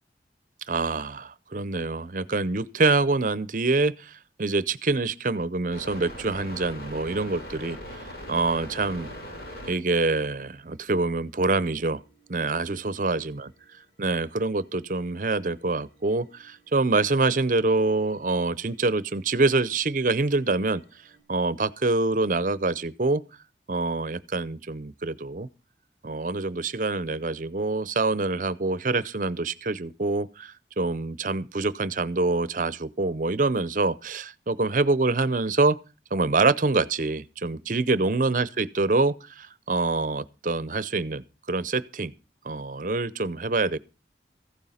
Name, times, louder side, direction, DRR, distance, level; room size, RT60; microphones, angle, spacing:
voice 1, 0.7-7.8 8.3-9.1 9.7-12.0 12.3-13.5 14.0-20.8 21.3-23.2 23.7-25.5 26.0-35.8 36.1-42.1 42.4-43.8, right 3 dB, 50° right, 0.7 m, -25 dB
sound 1, 5.7-9.7 10.8-10.9 11.7-13.7 14.1-21.2, equal, 65° left, 7.1 m, -44 dB
15.0 x 9.1 x 5.7 m
head